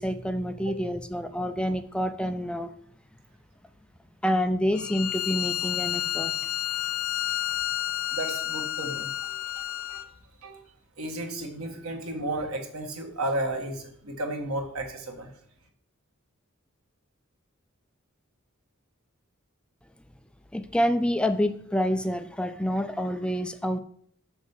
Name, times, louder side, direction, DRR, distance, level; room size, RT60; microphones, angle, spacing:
voice 1, 0.0-2.7 4.2-6.4 20.5-23.8, equal, 5° left, 9 dB, 0.4 m, -27 dB
Bowed string instrument, 4.7-10.1, left 13 dB, 70° left, 0.4 m, -30 dB
voice 2, 8.1-10.1 10.4-10.6 11.0-15.3, right 1 dB, 90° right, 4 dB, 1.6 m, -33 dB
6.3 x 6.1 x 5.5 m, 0.65 s
head